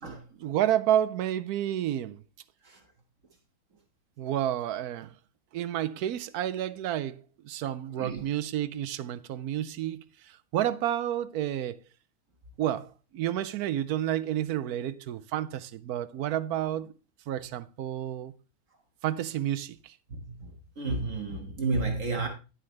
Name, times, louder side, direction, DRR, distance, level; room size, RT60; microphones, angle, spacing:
voice 1, 0.4-2.2 4.2-5.1 5.5-11.8 12.6-16.9 17.3-18.3 19.0-19.9, right 11 dB, 90° right, 1.1 m, -30 dB
voice 2, 20.1-22.3, right 3 dB, 60° right, 1.8 m, -32 dB
10.5 x 7.6 x 3.2 m
omnidirectional pair, 1.5 m